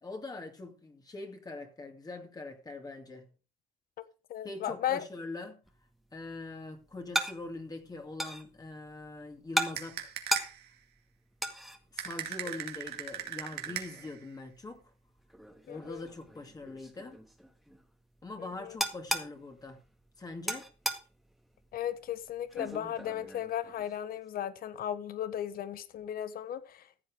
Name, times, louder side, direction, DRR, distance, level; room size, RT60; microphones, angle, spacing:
voice 1, 0.0-3.3 4.4-5.6 6.1-10.1 11.9-14.9 15.6-17.2 18.2-19.8 20.2-20.7, left 2 dB, 20° left, 2.5 m, -43 dB
voice 2, 4.3-5.0 15.7-16.0 18.4-18.8 21.7-27.0, left 10 dB, 60° left, 1.4 m, -36 dB
sound 1, 5.6-24.2, equal, ahead, 1.8 m, -40 dB
sound 2, 9.8-10.7 12.0-14.2, right 10 dB, 75° right, 2.2 m, -39 dB
15.0 x 7.9 x 4.9 m
cardioid pair, 110°, 17 cm